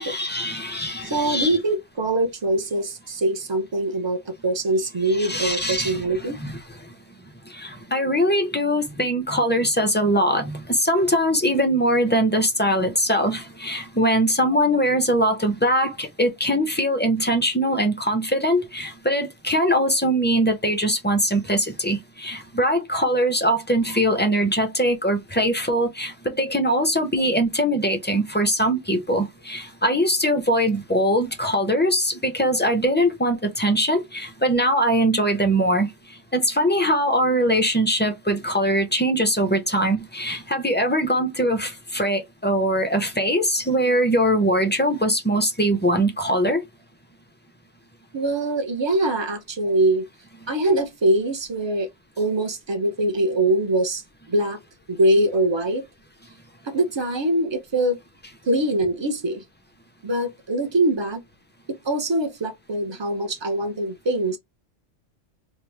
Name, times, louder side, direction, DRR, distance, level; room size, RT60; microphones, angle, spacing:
voice 1, 0.0-1.6 5.1-6.6 7.5-35.9 36.3-46.6, equal, 15° left, 0.3 m, -22 dB
voice 2, 1.0-6.4 48.1-50.1 50.5-51.9 52.2-54.0 54.3-54.6 54.9-55.8 56.6-58.0 58.5-59.4 60.0-61.2 61.8-64.4, right 1 dB, 25° right, 0.7 m, -23 dB
2.9 x 2.5 x 3.3 m
omnidirectional pair, 1.3 m